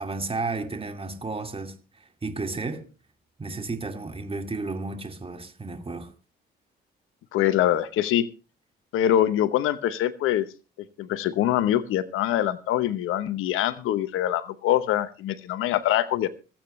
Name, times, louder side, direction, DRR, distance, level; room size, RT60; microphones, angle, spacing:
voice 1, 0.0-2.9 3.4-6.1, right 3 dB, 25° right, 2.3 m, -33 dB
voice 2, 7.3-8.3 8.9-10.5 11.0-16.3, left 12 dB, 80° left, 1.0 m, -24 dB
26.0 x 8.9 x 3.2 m
supercardioid pair, 60°, 21 cm